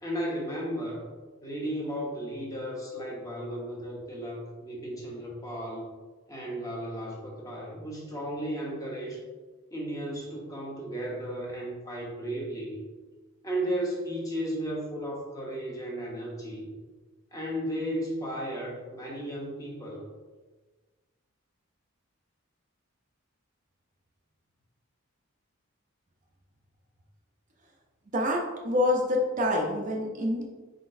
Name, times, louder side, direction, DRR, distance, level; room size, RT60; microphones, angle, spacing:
voice 1, 0.0-1.0 1.4-5.9 6.3-9.2 9.7-12.8 13.4-16.7 17.3-20.1, right 1 dB, 15° left, -2 dB, 0.7 m, -34 dB
voice 2, 28.1-30.4, left 1 dB, 35° right, 0 dB, 0.4 m, -26 dB
4.2 x 3.8 x 2.5 m, 1.3 s
head